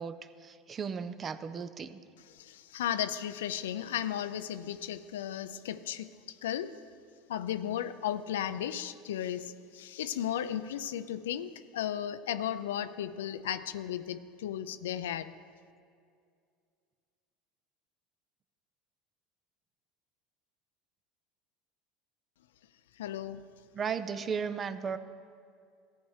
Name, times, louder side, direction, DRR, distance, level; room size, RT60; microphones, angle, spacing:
voice 1, 0.0-2.0 23.7-25.0, right 6 dB, 35° right, 13 dB, 0.5 m, -35 dB
voice 2, 2.3-6.7 7.3-15.3 23.0-23.4, left 10 dB, 85° left, 13 dB, 0.4 m, -35 dB
14.5 x 9.0 x 3.2 m, 2.2 s
hypercardioid pair, 85°, 0 cm